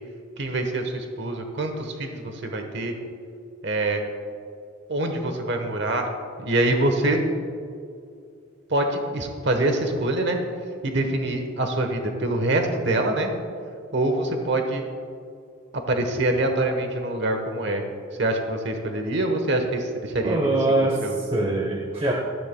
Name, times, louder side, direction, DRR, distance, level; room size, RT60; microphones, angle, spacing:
voice 1, 0.4-2.9 3.6-4.0 4.9-6.1 6.4-7.2 8.7-10.4 10.8-13.3 13.9-14.9 15.9-17.8 18.2-20.5 20.8-21.2, right 2 dB, 55° right, 4 dB, 1.1 m, -25 dB
voice 2, 20.2-22.1, right 2 dB, 25° right, 1 dB, 0.8 m, -23 dB
17.0 x 14.0 x 2.2 m, 2.4 s
head